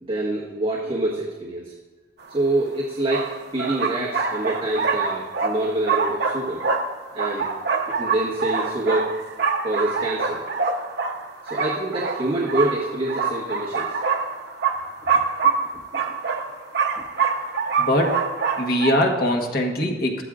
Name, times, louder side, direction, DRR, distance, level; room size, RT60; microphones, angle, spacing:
voice 1, 0.0-1.7 2.3-6.6 7.1-7.5 7.9-9.1 9.6-10.4 11.4-13.9 15.9-16.0, right 1 dB, 30° right, -5 dB, 1.5 m, -26 dB
sound 1, 2.3-2.4 3.1-18.9, right 5 dB, 65° right, 1.0 m, -25 dB
voice 2, 17.8-18.2 18.6-20.2, left 1 dB, 60° left, 1 dB, 1.4 m, -22 dB
14.5 x 12.5 x 2.5 m, 1.2 s
head